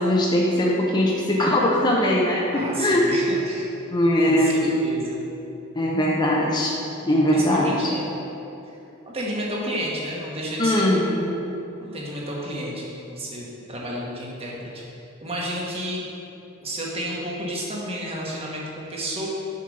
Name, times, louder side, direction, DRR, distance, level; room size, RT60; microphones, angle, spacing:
voice 1, 0.0-3.1 3.9-4.8 5.7-6.7 7.0-7.7 10.6-11.4, left 1 dB, 20° left, -4 dB, 0.7 m, -21 dB
voice 2, 2.5-3.7 4.2-5.2 7.3-8.1 8.6-8.7 9.1-11.3 11.8-16.0 16.6-19.3, equal, 25° right, -4 dB, 1.3 m, -31 dB
6.7 x 5.3 x 5.3 m, 2.9 s
head